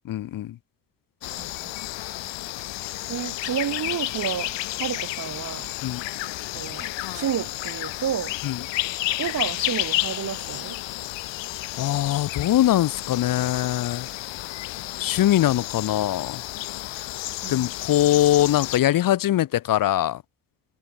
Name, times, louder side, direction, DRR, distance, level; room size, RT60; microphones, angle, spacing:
voice 1, 0.0-0.6 5.8-6.0 8.4-8.6 11.8-14.1 15.0-16.4 17.5-20.2, left 13 dB, 50° left, 1.0 m, -22 dB
sound 1, 1.2-18.8, left 17 dB, 90° left, 5.3 m, -31 dB
voice 2, 1.4-1.7 3.1-4.5 4.8-5.7 6.5-8.3 9.2-10.8 17.4-17.7, right 9 dB, 45° right, 4.3 m, -30 dB
cardioid pair, 145°, 43 cm